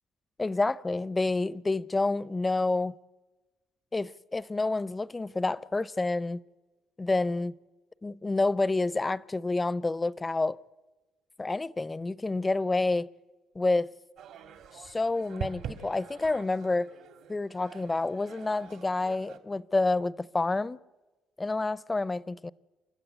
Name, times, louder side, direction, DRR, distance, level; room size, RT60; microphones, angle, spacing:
voice 1, 0.4-2.9 3.9-6.4 7.0-7.5 8.0-10.6 11.4-13.1 13.5-13.9 14.7-16.9 17.3-20.8 21.4-22.5, left 3 dB, 20° left, 0.6 m, -28 dB
sound 1, 14.2-19.4, right 8 dB, 75° right, 2.2 m, -44 dB
28.5 x 13.0 x 9.1 m
cardioid pair, 85°, 0 cm